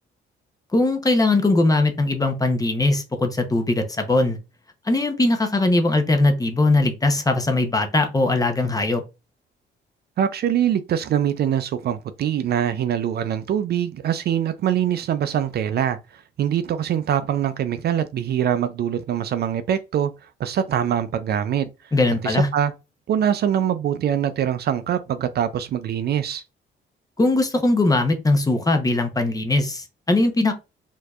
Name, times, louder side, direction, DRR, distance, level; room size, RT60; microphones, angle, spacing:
voice 1, 0.7-4.4 4.8-9.0 21.9-22.5 27.2-30.5, left 2 dB, 20° left, 0.7 m, -20 dB
voice 2, 10.2-20.1 20.4-21.7 22.2-22.7 23.1-26.4, right 9 dB, 55° right, 0.4 m, -23 dB
4.4 x 2.7 x 2.3 m
cardioid pair, 90°, 20 cm